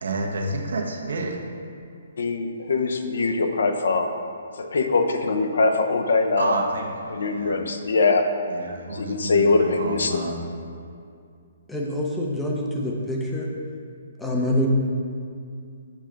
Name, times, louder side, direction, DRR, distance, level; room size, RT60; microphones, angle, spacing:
voice 1, 0.0-1.4 6.4-7.6 8.5-10.4, right 2 dB, 80° right, 1 dB, 1.0 m, -29 dB
voice 2, 2.2-4.1 4.6-6.5 7.1-8.3 8.9-10.2, left 3 dB, 65° left, 6 dB, 0.7 m, -22 dB
voice 3, 11.7-13.5 14.2-14.7, left 1 dB, 5° left, -3 dB, 0.5 m, -26 dB
7.2 x 3.8 x 5.8 m, 2.4 s
hypercardioid pair, 180°, 0 cm